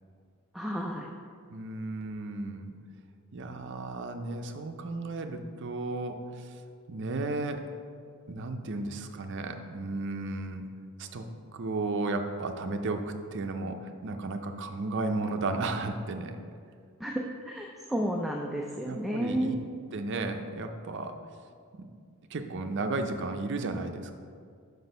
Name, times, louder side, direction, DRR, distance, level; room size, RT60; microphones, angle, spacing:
voice 1, 0.5-1.1 17.0-19.6, equal, ahead, 0 dB, 0.3 m, -32 dB
voice 2, 1.5-2.7 3.3-6.5 6.9-7.6 8.3-10.6 11.0-16.4 18.9-19.6 19.9-21.2 21.8-21.9 22.3-24.1, right 2 dB, 55° right, 6 dB, 0.5 m, -34 dB
6.1 x 5.2 x 5.3 m, 2.2 s
head